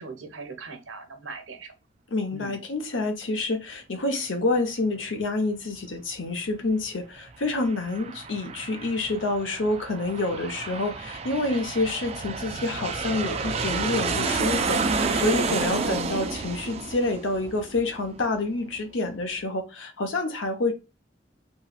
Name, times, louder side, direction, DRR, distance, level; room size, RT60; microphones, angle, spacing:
voice 1, 0.0-1.7 2.3-2.6 15.9-16.3, right 2 dB, 90° right, 0.7 m, -40 dB
voice 2, 2.1-20.7, left 2 dB, 85° left, 0.8 m, -28 dB
Aircraft, 7.3-18.5, right 4 dB, 35° right, 0.4 m, -30 dB
3.0 x 2.7 x 2.3 m
head